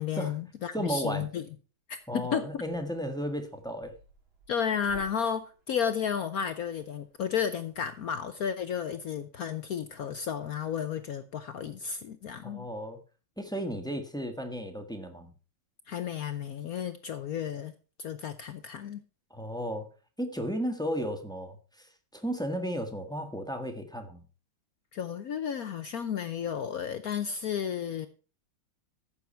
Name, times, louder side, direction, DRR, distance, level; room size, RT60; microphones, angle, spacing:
voice 1, 0.0-1.4 1.9-2.6 4.5-12.7 15.9-17.7 18.0-19.0 24.9-28.1, left 8 dB, 65° left, 0.9 m, -33 dB
voice 2, 0.7-1.3 2.1-3.9 12.4-13.0 13.4-15.3 19.3-19.9 20.2-21.9 22.1-24.2, equal, ahead, 1.2 m, -34 dB
sound 1, 1.9-7.8, right 2 dB, 85° right, 4.3 m, -57 dB
14.5 x 7.1 x 4.3 m
omnidirectional pair, 2.1 m